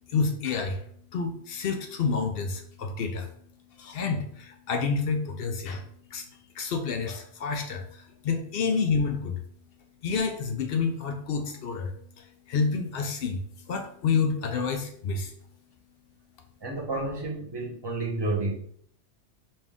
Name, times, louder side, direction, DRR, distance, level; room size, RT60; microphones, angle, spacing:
voice 1, 0.1-0.8 1.1-3.3 3.8-5.8 6.1-6.2 6.6-9.4 10.0-15.3, left 5 dB, 65° left, 5 dB, 0.7 m, -29 dB
voice 2, 16.6-18.5, right 2 dB, 25° right, -2 dB, 0.7 m, -30 dB
4.2 x 2.5 x 3.5 m, 0.63 s
omnidirectional pair, 1.2 m